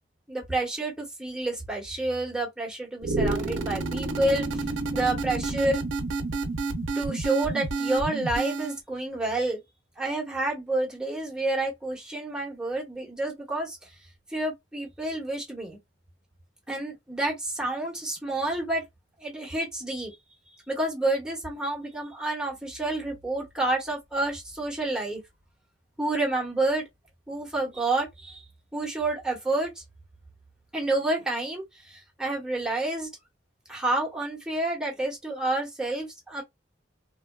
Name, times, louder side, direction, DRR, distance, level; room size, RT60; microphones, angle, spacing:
voice 1, 0.3-4.6 4.9-5.8 6.9-9.6 10.0-13.8 14.3-15.8 16.7-18.8 19.2-20.1 20.7-25.2 26.0-26.9 27.3-28.4 28.7-29.8 30.7-33.1 33.7-36.4, right 2 dB, 5° right, 1.1 m, -29 dB
sound 1, 3.0-8.8, right 3 dB, 85° right, 0.6 m, -29 dB
3.0 x 2.2 x 2.2 m
head